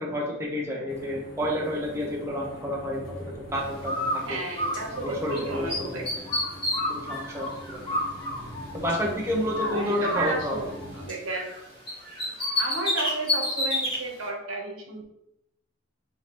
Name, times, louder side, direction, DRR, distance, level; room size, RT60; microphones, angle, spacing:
voice 1, 0.0-4.4 5.0-6.1 6.9-7.8 8.7-10.6, equal, 15° right, -2 dB, 0.7 m, -30 dB
sound 1, 0.9-11.1, equal, 55° left, 1.2 m, -43 dB
Bird, 3.8-5.4 5.7-9.1 9.5-11.6 11.9-14.0, left 1 dB, 20° left, 1.5 m, -30 dB
voice 2, 4.2-6.5 7.7-8.0 9.6-11.6 12.6-15.0, right 2 dB, 80° right, 0 dB, 1.0 m, -33 dB
5.6 x 2.9 x 3.0 m, 0.82 s
head